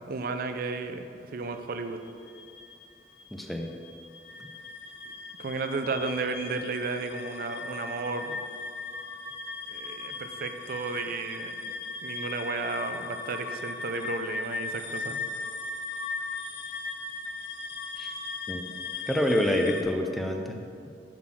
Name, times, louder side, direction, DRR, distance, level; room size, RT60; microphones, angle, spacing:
voice 1, 0.0-2.0 5.4-8.4 9.7-11.7 12.0-15.2, right 4 dB, 55° right, 8 dB, 0.5 m, -33 dB
sound 1, 1.9-19.8, left 3 dB, 65° left, 0.7 m, -38 dB
voice 2, 3.3-3.7 4.4-4.5 18.0-18.1 18.5-18.6 19.1-20.6, left 1 dB, ahead, 3 dB, 0.5 m, -27 dB
7.4 x 4.0 x 6.1 m, 2.4 s
head